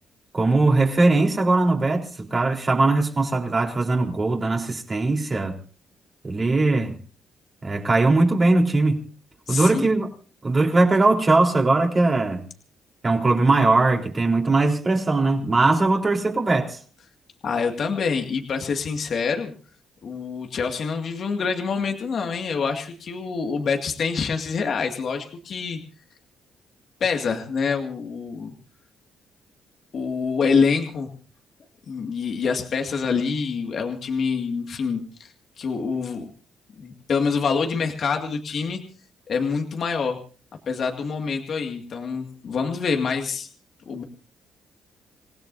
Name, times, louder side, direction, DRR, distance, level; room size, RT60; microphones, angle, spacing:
voice 1, 0.3-5.6 6.2-6.9 7.6-9.1 9.5-10.1 10.4-12.4 13.0-16.8, right 2 dB, 30° right, 3.8 m, -20 dB
voice 2, 9.5-9.9 17.4-19.5 20.0-25.8 27.0-28.5 29.9-31.1 31.9-36.3 36.8-38.8 39.3-40.2 40.7-43.5 43.9-44.0, left 5 dB, 55° left, 2.1 m, -26 dB
27.5 x 17.0 x 2.7 m
cardioid pair, 85°, 0 cm